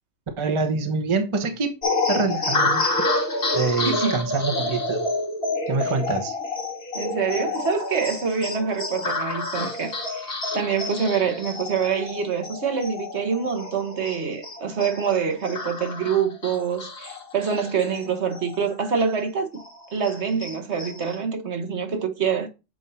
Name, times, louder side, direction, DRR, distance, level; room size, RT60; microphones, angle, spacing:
voice 1, 0.4-1.8 2.1-2.8 3.5-5.0 5.7-6.4, right 4 dB, 30° right, 0.8 m, -25 dB
sound 1, 1.8-18.7 19.1-19.2 19.6-21.2, left 2 dB, 55° left, 1.5 m, -28 dB
voice 2, 3.8-4.2 6.9-19.6 19.9-22.5, right 6 dB, 65° right, 1.4 m, -26 dB
7.5 x 2.6 x 5.4 m
omnidirectional pair, 1.3 m